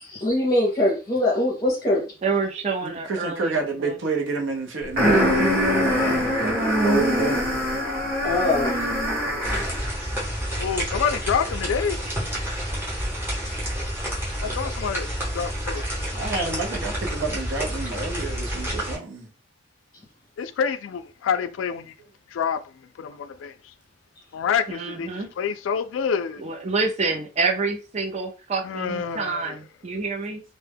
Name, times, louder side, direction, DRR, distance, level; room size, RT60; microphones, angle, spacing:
voice 1, 0.1-2.0 8.2-8.8 16.1-16.4, left 1 dB, 20° left, 0.6 m, -23 dB
voice 2, 2.2-3.9 24.7-25.3 26.4-30.4, right 4 dB, 35° right, 0.5 m, -27 dB
voice 3, 2.8-5.5 6.4-7.5 10.5-10.6 16.1-19.3, right 3 dB, 80° right, 0.6 m, -29 dB
sound 1, 5.0-9.9, equal, 50° right, 1.0 m, -22 dB
voice 4, 6.0-6.3 10.6-12.0 14.4-15.9 20.4-21.9 22.3-23.7 24.3-26.4 28.6-29.6, left 7 dB, 85° left, 0.3 m, -27 dB
sound 2, 9.4-19.0, equal, 10° right, 0.9 m, -29 dB
2.1 x 2.0 x 3.3 m
head